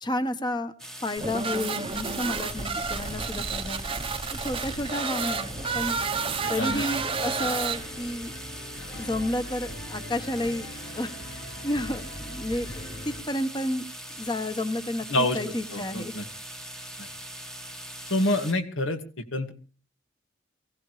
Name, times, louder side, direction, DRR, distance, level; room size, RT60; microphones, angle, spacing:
voice 1, 0.0-3.9 4.3-6.0 6.5-8.3 9.0-10.7 10.9-13.9 14.1-16.1, left 1 dB, 20° left, 9 dB, 1.3 m, -31 dB
sound 1, 0.8-18.5, right 1 dB, 5° left, 1.2 m, -41 dB
sound 2, 1.2-8.2, right 5 dB, 25° right, 1.0 m, -31 dB
sound 3, 4.7-13.2, left 1 dB, 55° left, 3.3 m, -41 dB
voice 2, 6.4-6.8 15.1-15.4 15.7-16.2 17.0-17.1 18.1-19.0 19.3-19.5, left 1 dB, 75° left, 7 dB, 2.2 m, -26 dB
23.5 x 16.0 x 3.3 m, 0.37 s
head